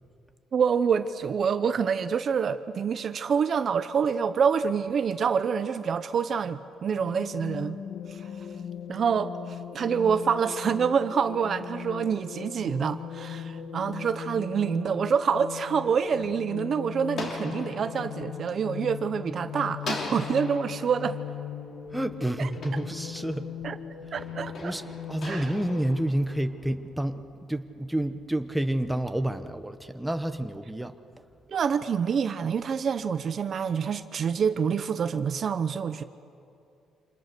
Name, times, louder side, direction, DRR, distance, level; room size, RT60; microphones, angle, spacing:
voice 1, 0.5-7.8 8.1-8.3 8.9-21.2 22.4-22.5 23.6-23.8 24.1-24.7 25.2-25.5 31.5-36.0, right 6 dB, 35° right, 11 dB, 0.6 m, -27 dB
sound 1, 6.9-26.1, left 8 dB, 65° left, 1.5 m, -39 dB
sound 2, 15.6-19.3 19.8-23.6 24.2-26.8, left 3 dB, 40° left, 2.9 m, -41 dB
voice 2, 21.9-23.5 24.6-24.8 25.1-27.2 27.5-30.9, right 1 dB, 5° right, 8 dB, 0.8 m, -29 dB
28.5 x 26.5 x 6.7 m, 2.6 s
cardioid pair, 175°, 0 cm